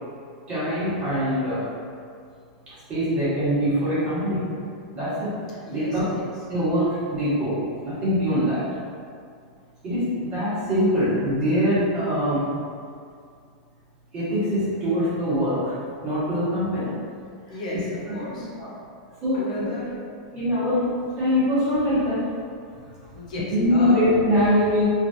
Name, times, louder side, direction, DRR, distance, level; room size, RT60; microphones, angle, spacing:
voice 1, 0.5-1.7 2.7-4.4 4.9-5.3 5.7-6.0 6.5-8.6 9.8-12.5 14.1-15.7 16.0-16.9 18.6-18.7 19.2-19.7 20.3-20.8 21.2-22.2 23.5-24.8, equal, 25° right, -12 dB, 1.3 m, -23 dB
voice 2, 5.6-6.2 17.5-18.5 19.3-19.9 23.1-24.0, left 1 dB, 80° left, -5 dB, 0.8 m, -34 dB
3.1 x 2.6 x 2.6 m, 2.3 s
supercardioid pair, 170°, 4 cm